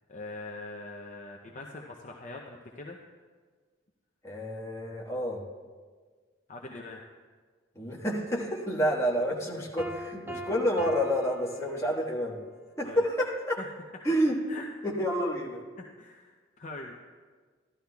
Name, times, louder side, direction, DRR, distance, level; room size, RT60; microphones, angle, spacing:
voice 1, 0.1-3.0 6.5-7.0 12.8-13.0 14.5-14.7 15.8-17.0, left 2 dB, 40° left, 0 dB, 0.6 m, -42 dB
voice 2, 4.2-5.4 7.7-12.4 12.8-13.6 14.0-14.4 14.8-15.6, equal, 15° left, -4 dB, 1.5 m, -29 dB
Piano, 9.8-12.3, equal, 10° right, 0.6 m, -41 dB
14.5 x 12.0 x 2.3 m, 1.5 s
head